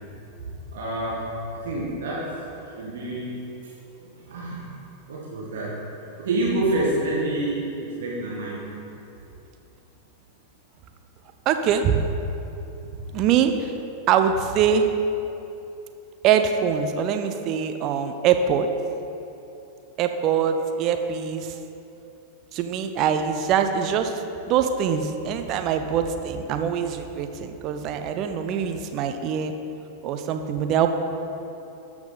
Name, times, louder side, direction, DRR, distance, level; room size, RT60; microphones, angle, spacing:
voice 1, 0.4-1.3 1.6-2.3 2.6-3.4 4.0-4.6 5.1-5.8 6.2-8.7, right 2 dB, 60° right, -5 dB, 1.7 m, -28 dB
voice 2, 11.5-12.0 13.1-13.7 14.1-14.9 16.2-18.7 20.0-21.6 22.5-29.5 30.0-30.9, right 8 dB, 40° right, 7 dB, 0.6 m, -23 dB
13.0 x 6.0 x 4.1 m, 2.9 s
figure-of-eight pair, 90°, 0 cm